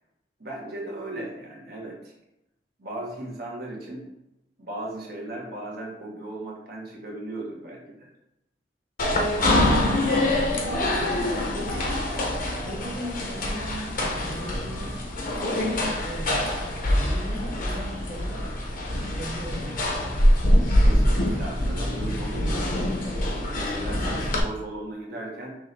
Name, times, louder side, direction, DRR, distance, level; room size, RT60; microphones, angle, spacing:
voice 1, 0.4-2.1 2.8-4.0 4.6-8.1 20.8-25.6, right 1 dB, 60° right, -3 dB, 1.4 m, -37 dB
sound 1, 9.0-24.4, left 1 dB, 55° left, 0.8 m, -24 dB
voice 2, 10.3-12.0 12.6-14.9 16.0-18.5 19.2-20.0, equal, 45° right, -3 dB, 0.9 m, -38 dB
5.9 x 2.6 x 3.3 m, 0.88 s
head